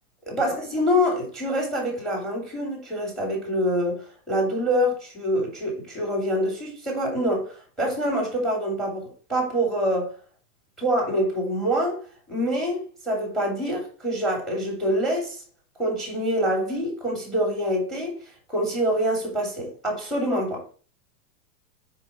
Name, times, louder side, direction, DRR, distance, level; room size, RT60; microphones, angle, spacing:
voice 1, 0.3-10.1 10.8-12.0 12.3-15.4 15.8-18.1 18.5-20.6, equal, ahead, 3.1 m, -25 dB
5.4 x 5.3 x 5.8 m
supercardioid pair, 155°, 50 cm